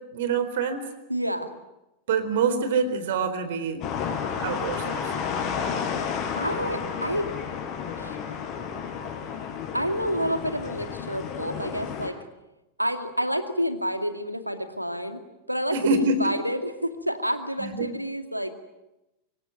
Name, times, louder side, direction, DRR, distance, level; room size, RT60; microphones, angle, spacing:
voice 1, 0.1-0.8 2.1-3.8 4.4-5.1 15.7-16.3 17.6-17.9, right 4 dB, 55° right, 9 dB, 4.2 m, -26 dB
voice 2, 1.1-1.5 6.3-7.3 7.9-8.2 9.7-12.2 12.8-15.2 15.5-18.5, equal, 90° right, 8 dB, 2.3 m, -28 dB
sound 1, 3.8-12.1, left 7 dB, 40° left, 5.3 m, -31 dB
26.0 x 23.0 x 9.2 m, 0.94 s
figure-of-eight pair, 90°, 0 cm